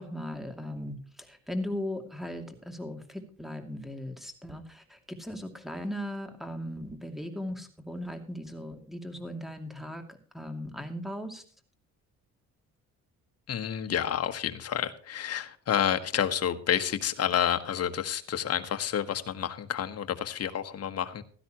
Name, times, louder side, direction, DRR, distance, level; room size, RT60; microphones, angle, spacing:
voice 1, 0.0-10.0 10.3-11.4, left 1 dB, ahead, 6 dB, 2.5 m, -38 dB
voice 2, 13.5-21.2, left 9 dB, 55° left, 8 dB, 1.3 m, -29 dB
16.0 x 12.5 x 3.0 m, 0.43 s
cardioid pair, 90°, 30 cm